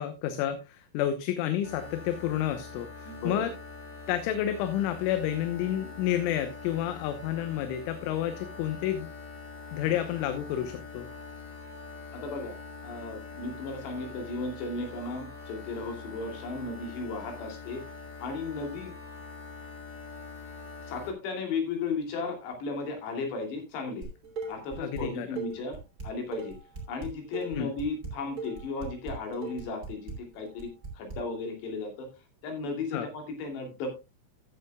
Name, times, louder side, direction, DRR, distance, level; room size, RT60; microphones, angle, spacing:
voice 1, 0.0-3.5 4.1-9.1 9.7-11.1 24.8-25.3 27.6-27.7 32.9-33.1, left 11 dB, 80° left, 9 dB, 3.3 m, -30 dB
sound 1, 1.6-21.1, left 4 dB, 20° left, 1.8 m, -44 dB
voice 2, 3.0-3.5 9.8-9.9 12.1-12.6 12.8-17.8 18.2-18.9 20.9-24.1 24.5-25.8 26.0-26.5 26.9-30.7 30.9-32.1 32.4-34.0, left 3 dB, 60° left, 3 dB, 4.6 m, -35 dB
Dishes pots and pans, 24.0-25.0 25.4-31.2, right 3 dB, 25° right, 2.6 m, -39 dB
14.0 x 10.5 x 2.3 m, 0.25 s
omnidirectional pair, 5.7 m